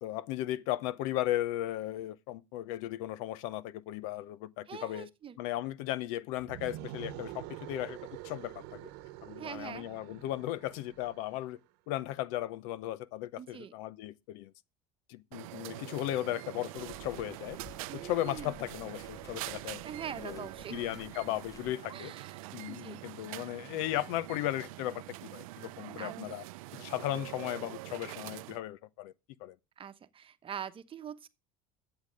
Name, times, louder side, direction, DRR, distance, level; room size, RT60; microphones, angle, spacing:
voice 1, 0.0-5.1 5.4-8.0 8.2-8.8 9.2-11.6 11.9-14.5 15.1-17.6 17.9-19.8 20.2-22.1 22.5-26.4 26.7-29.1 29.4-29.6, left 14 dB, 75° left, 0.8 m, -36 dB
voice 2, 4.7-5.4 9.4-9.9 13.4-13.7 17.9-18.6 19.8-20.9 21.9-23.0 26.0-26.1 29.8-31.3, right 8 dB, 30° right, 1.0 m, -43 dB
sound 1, 6.3-11.4, right 14 dB, 70° right, 1.0 m, -46 dB
sound 2, 15.3-28.6, right 18 dB, 90° right, 0.6 m, -45 dB
sound 3, 16.8-21.7, left 5 dB, 20° left, 0.7 m, -55 dB
10.5 x 8.0 x 5.1 m
supercardioid pair, 110°, 17 cm